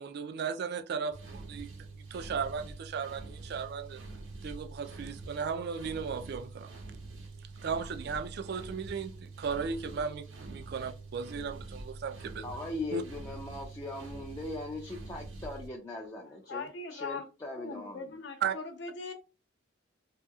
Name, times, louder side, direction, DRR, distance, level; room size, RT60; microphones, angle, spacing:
voice 1, 0.0-4.0 4.4-6.7 7.6-12.5 12.9-13.0 18.4-18.5, right 6 dB, 55° right, 0.3 m, -36 dB
sound 1, 1.1-15.7, right 3 dB, 85° right, 1.2 m, -45 dB
voice 2, 12.4-18.2, left 2 dB, 15° left, 0.4 m, -40 dB
voice 3, 16.5-17.2 17.6-19.2, left 4 dB, 60° left, 0.7 m, -40 dB
2.8 x 2.7 x 2.3 m
head